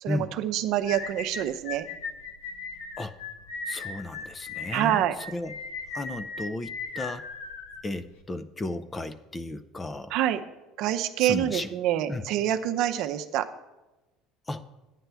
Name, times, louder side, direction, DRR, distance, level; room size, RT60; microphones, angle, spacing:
voice 1, 0.0-1.9 4.7-5.2 10.1-10.4 10.8-13.5, right 12 dB, 65° right, 8 dB, 0.6 m, -26 dB
sound 1, 0.8-8.2, left 4 dB, 85° left, 1.0 m, -38 dB
voice 2, 3.7-5.6 5.9-7.2 7.8-10.1 11.2-11.7 12.1-12.2 14.5-14.6, left 2 dB, 20° left, 13 dB, 0.5 m, -34 dB
9.6 x 9.0 x 3.4 m, 1.1 s
supercardioid pair, 115°, 0 cm